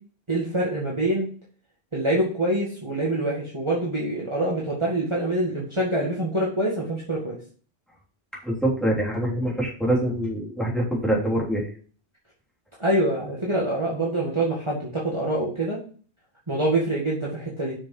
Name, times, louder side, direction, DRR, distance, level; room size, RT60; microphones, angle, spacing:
voice 1, 0.3-1.3 1.9-7.4 12.8-15.8 16.5-17.7, right 1 dB, 25° right, -5 dB, 2.1 m, -25 dB
voice 2, 8.4-11.7, right 1 dB, ahead, -4 dB, 3.3 m, -24 dB
6.7 x 6.4 x 6.0 m, 0.42 s
omnidirectional pair, 1.1 m